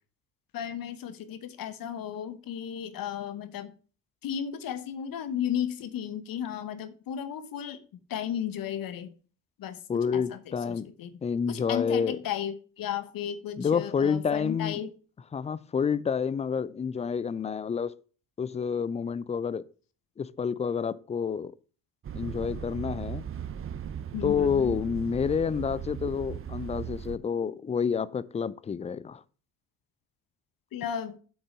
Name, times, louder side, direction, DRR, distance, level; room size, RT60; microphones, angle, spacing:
voice 1, 0.5-3.7 4.2-7.8 8.1-9.1 9.6-9.8 10.1-11.2 11.5-14.9 24.1-24.8 30.7-31.2, left 9 dB, 50° left, 1.1 m, -34 dB
voice 2, 9.9-10.9 11.2-12.2 13.6-14.8 15.3-17.9 18.4-19.6 20.2-21.5 22.1-23.2 24.2-29.2, left 6 dB, 15° left, 0.4 m, -29 dB
sound 1, 22.0-27.2, right 9 dB, 30° right, 0.8 m, -37 dB
8.0 x 6.3 x 5.1 m
hypercardioid pair, 50°, 44 cm